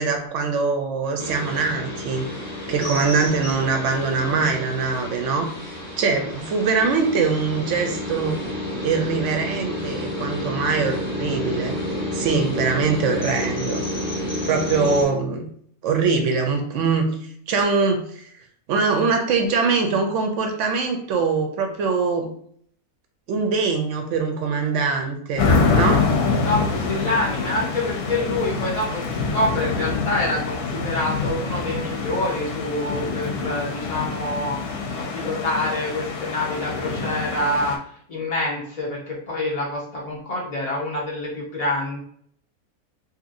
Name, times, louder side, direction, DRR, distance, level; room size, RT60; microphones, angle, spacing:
voice 1, 0.0-2.3 2.7-8.4 8.8-13.8 14.5-15.5 15.8-17.2 17.5-18.3 18.7-22.3 23.3-26.1, right 4 dB, 65° right, 4 dB, 0.8 m, -23 dB
sound 1, 1.2-15.0, left 1 dB, 30° left, 0.9 m, -30 dB
sound 2, 25.4-37.8, left 4 dB, 90° left, 1.1 m, -25 dB
voice 2, 26.4-42.0, left 1 dB, 65° left, -4 dB, 0.3 m, -26 dB
2.8 x 2.6 x 2.5 m, 0.62 s
omnidirectional pair, 1.6 m